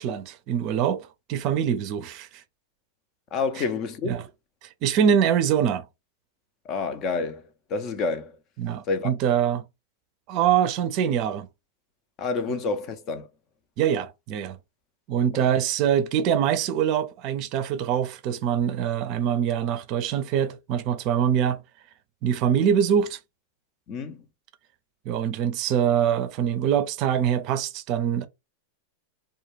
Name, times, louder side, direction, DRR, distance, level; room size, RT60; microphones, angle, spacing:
voice 1, 0.0-2.3 4.1-4.2 4.8-5.8 8.6-9.6 10.3-11.5 13.8-14.6 15.1-21.6 22.2-23.2 25.1-28.3, right 9 dB, 50° right, 0.4 m, -24 dB
voice 2, 3.3-4.2 6.6-8.4 8.9-9.1 12.2-13.3 15.3-15.5 23.9-24.3, left 4 dB, 40° left, 0.5 m, -29 dB
2.3 x 2.2 x 3.1 m
hypercardioid pair, 105°, 0 cm